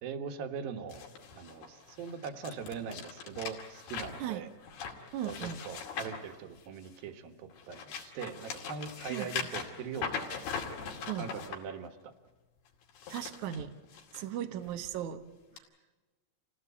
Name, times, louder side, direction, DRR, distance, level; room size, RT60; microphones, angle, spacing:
voice 1, 0.0-1.0 1.3-4.5 5.2-10.3 11.2-12.1, right 6 dB, 65° right, 7 dB, 2.8 m, -41 dB
sound 1, 0.9-7.0 7.5-11.6 12.8-14.2 14.7-14.9 15.6-15.7, left 6 dB, 65° left, 4.2 m, -41 dB
voice 2, 5.1-5.6 9.1-9.3 11.1-11.3 13.1-13.7 14.1-15.2, right 10 dB, 85° right, 7 dB, 1.7 m, -37 dB
28.5 x 17.5 x 8.3 m, 1.2 s
omnidirectional pair, 5.1 m